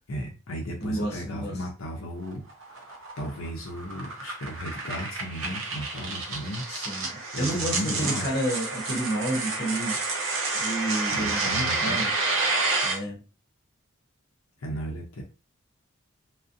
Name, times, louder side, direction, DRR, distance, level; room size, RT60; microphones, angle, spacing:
voice 1, 0.1-2.4 2.7-6.6 7.3-8.2 11.1-12.0 14.6-15.2, equal, 85° left, 1 dB, 0.6 m, -35 dB
voice 2, 0.8-1.6 6.7-10.0 10.5-12.1 12.8-13.2, right 1 dB, 50° left, -1 dB, 0.8 m, -30 dB
sound 1, 2.2-13.0, right 3 dB, 75° right, 0.7 m, -29 dB
2.5 x 2.1 x 2.5 m, 0.32 s
head